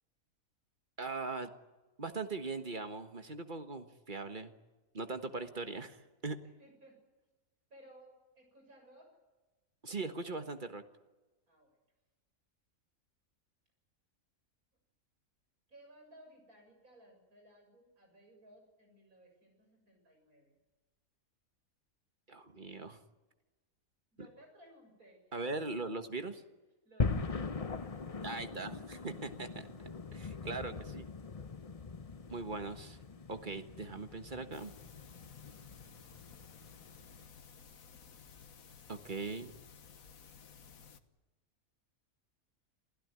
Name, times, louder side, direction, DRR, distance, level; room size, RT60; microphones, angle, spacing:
voice 1, 1.0-1.5 2.0-4.5 4.9-6.4 9.8-10.8 22.3-23.0 25.3-26.4 28.2-29.7 30.1-31.1 32.3-33.0 33.3-34.7 38.9-39.5, right 3 dB, 35° right, 8 dB, 1.6 m, -40 dB
voice 2, 6.6-7.0 7.7-9.2 11.5-11.8 15.7-20.5 24.1-25.2 25.6-25.7 26.8-28.7, right 1 dB, 90° right, 3 dB, 7.6 m, -60 dB
sound 1, 27.0-37.3, left 4 dB, 30° left, 0.8 m, -41 dB
sound 2, 34.5-41.0, left 6 dB, 75° left, 1.7 m, -56 dB
28.0 x 16.5 x 9.7 m, 1.2 s
omnidirectional pair, 1.5 m